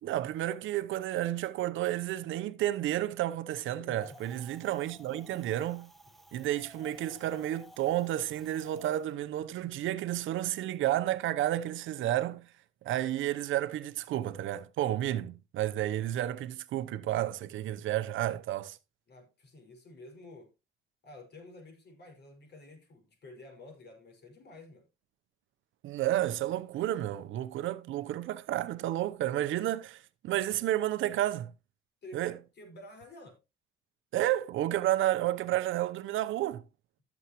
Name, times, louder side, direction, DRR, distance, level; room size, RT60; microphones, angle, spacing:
voice 1, 0.0-5.9 6.3-12.5 12.8-18.8 25.8-31.5 32.1-32.3 34.1-36.6, right 13 dB, 80° right, 0.7 m, -31 dB
voice 2, 3.6-4.2 19.1-20.5 21.0-24.9 32.0-33.4, left 1 dB, 55° left, 5.4 m, -51 dB
Wind, 3.9-9.0, left 1 dB, ahead, 1.1 m, -54 dB
15.0 x 7.2 x 3.0 m
cardioid pair, 90°, 20 cm